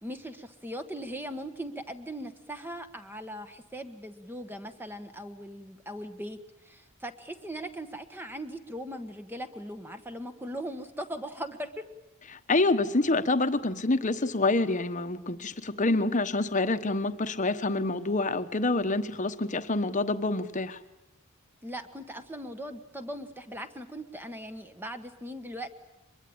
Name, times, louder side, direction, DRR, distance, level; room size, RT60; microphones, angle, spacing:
voice 1, 0.0-6.4 6.6-11.8 21.6-25.7, equal, 10° right, 8 dB, 1.4 m, -39 dB
voice 2, 12.3-20.8, left 2 dB, 35° left, 10 dB, 1.2 m, -27 dB
23.5 x 22.0 x 8.8 m, 0.94 s
head